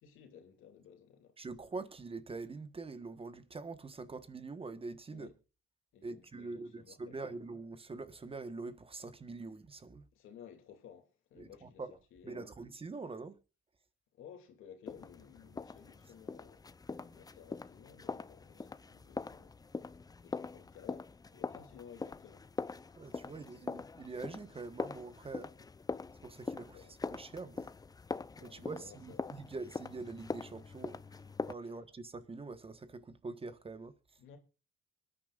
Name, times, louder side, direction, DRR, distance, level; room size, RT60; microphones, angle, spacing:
voice 1, 0.0-1.4 5.1-5.3 5.9-7.4 10.1-12.5 14.1-19.6 20.2-22.4 23.4-23.7 25.3-25.6 26.7-27.0 28.1-29.4 31.6-31.8 34.2-34.4, left 8 dB, 80° left, 2.7 m, -56 dB
voice 2, 1.4-5.3 6.0-10.0 11.4-11.9 12.2-13.4 23.0-25.5 26.2-27.7 28.4-31.0 31.5-34.0, right 3 dB, 25° right, 1.3 m, -44 dB
sound 1, 14.9-31.5, left 4 dB, 20° left, 0.5 m, -43 dB
24.0 x 9.8 x 2.5 m
cardioid pair, 90°, 21 cm